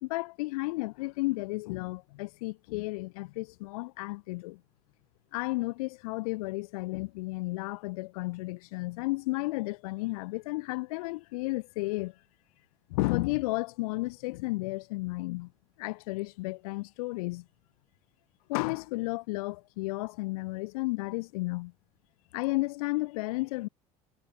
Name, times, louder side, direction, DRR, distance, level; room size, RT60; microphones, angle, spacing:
voice 1, 0.0-4.6 5.3-12.1 12.9-15.5 15.8-17.5 18.5-21.7 22.3-23.7, left 23 dB, 70° left, 3.6 m, -33 dB
figure-of-eight pair, 60°, 20 cm